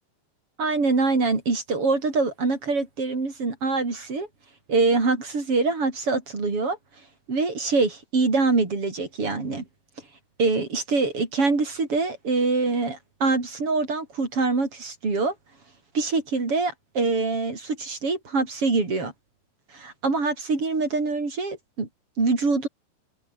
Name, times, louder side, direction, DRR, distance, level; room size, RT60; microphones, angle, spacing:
voice 1, 0.6-4.3 4.7-6.8 7.3-9.6 10.4-15.3 15.9-19.1 19.7-21.9 22.2-22.7, right 3 dB, 40° right, 5.8 m, -24 dB
omnidirectional pair, 3.8 m